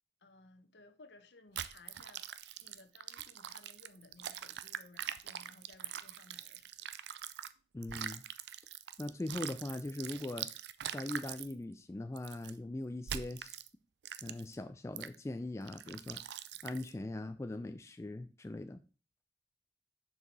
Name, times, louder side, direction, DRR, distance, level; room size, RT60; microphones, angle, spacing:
voice 1, 0.2-2.3 2.6-6.9, left 3 dB, 70° left, 0.9 m, -59 dB
sound 1, 1.5-7.5 7.8-11.5 12.2-12.5 13.1-13.7 14.0-14.5 15.0-15.1 15.7-16.9, right 10 dB, 70° right, 0.4 m, -43 dB
voice 2, 7.7-8.2 9.0-10.5 10.9-13.6 14.2-18.8, left 2 dB, 15° left, 0.3 m, -41 dB
6.8 x 4.6 x 4.6 m
head